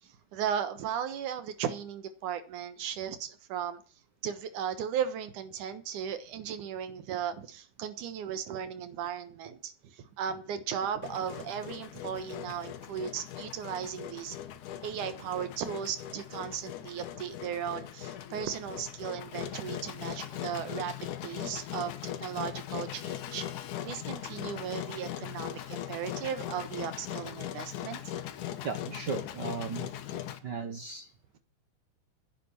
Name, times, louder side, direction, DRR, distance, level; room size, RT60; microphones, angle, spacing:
voice 1, 0.0-3.8 4.2-14.4 14.8-20.9 21.2-28.0, right 8 dB, 85° right, 2.8 m, -36 dB
Engine, 11.0-30.4, left 11 dB, 80° left, 2.6 m, -40 dB
voice 2, 28.6-29.9 30.4-31.4, right 5 dB, 65° right, 1.0 m, -37 dB
10.5 x 8.5 x 8.6 m
omnidirectional pair, 3.5 m